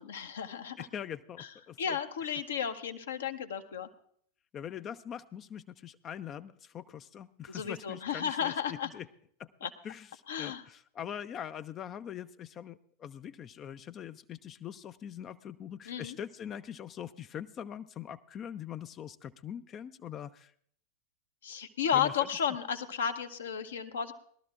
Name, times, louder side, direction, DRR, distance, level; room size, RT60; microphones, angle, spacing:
voice 1, 0.0-0.9 1.4-1.5 1.8-3.9 7.5-8.9 9.6-9.7 10.3-10.6 15.9-16.2 21.4-24.1, left 8 dB, 65° left, 8 dB, 0.9 m, -33 dB
voice 2, 0.8-2.0 4.5-9.1 9.4-9.5 9.8-10.1 10.4-20.5 21.9-22.1, left 9 dB, 30° left, 12 dB, 0.4 m, -42 dB
20.5 x 12.5 x 2.5 m, 0.62 s
figure-of-eight pair, 90°, 0 cm